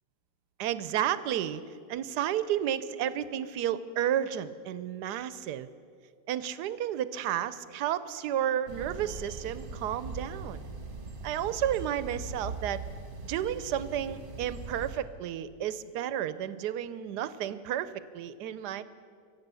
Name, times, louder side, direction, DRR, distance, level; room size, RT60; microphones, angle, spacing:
voice 1, 0.6-1.6 1.9-5.7 6.3-10.6 11.2-12.8 13.2-18.8, right 10 dB, 80° right, 15 dB, 1.2 m, -32 dB
sound 1, 8.7-15.0, right 3 dB, 35° right, 1.3 m, -41 dB
23.0 x 8.4 x 6.9 m, 2.2 s
omnidirectional pair, 1.8 m